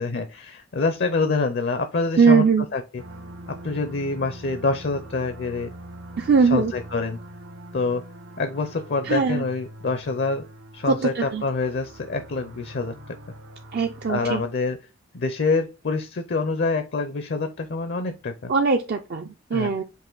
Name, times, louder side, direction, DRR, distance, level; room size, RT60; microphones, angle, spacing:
voice 1, 0.0-3.0 3.5-5.7 6.5-7.2 7.7-8.0 8.4-10.4 10.7-13.2 14.1-14.8 15.1-18.5 19.5-19.7, left 3 dB, 50° left, 8 dB, 0.5 m, -26 dB
voice 2, 2.2-2.7 6.2-6.7 9.1-9.4 10.9-11.4 13.7-14.4 18.5-19.8, right 5 dB, 50° right, 4 dB, 0.4 m, -20 dB
sound 1, 3.0-14.5, right 1 dB, 70° right, 0.9 m, -43 dB
5.5 x 2.5 x 3.8 m, 0.28 s
head